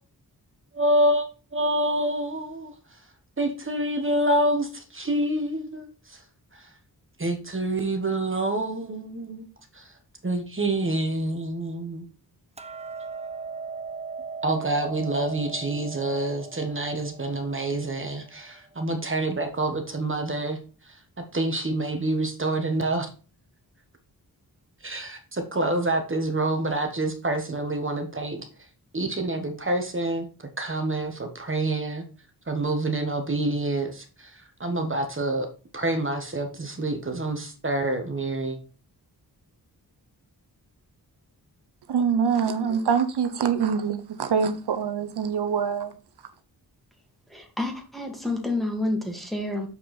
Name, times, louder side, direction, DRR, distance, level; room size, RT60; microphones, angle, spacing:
voice 1, 0.7-1.2 1.5-2.7 3.4-6.2 7.2-9.5 9.7-9.8 10.2-12.0 14.4-20.6 21.3-23.1 24.8-28.4 28.9-30.3 30.6-32.0 32.5-34.3 34.6-35.5 35.7-38.6, right 1 dB, 30° right, 1.4 m, -27 dB
Hammer, 12.6-18.8, right 5 dB, 15° right, 0.8 m, -39 dB
voice 2, 41.9-46.0, right 6 dB, 85° right, 0.9 m, -24 dB
voice 3, 47.3-49.7, left 2 dB, ahead, 2.4 m, -29 dB
7.0 x 5.4 x 4.3 m
wide cardioid pair, 75°, 39 cm